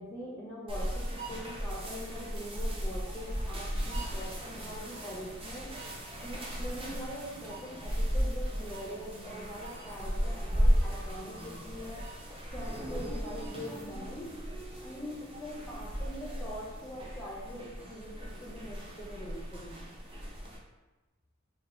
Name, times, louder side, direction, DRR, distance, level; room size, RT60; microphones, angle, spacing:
voice 1, 0.0-5.7 6.2-12.0 12.5-14.3 14.8-19.8, equal, 15° left, -6 dB, 0.5 m, -43 dB
sound 1, 0.7-20.6, equal, 25° right, 0.7 m, -35 dB
3.8 x 2.5 x 3.6 m, 1.1 s
head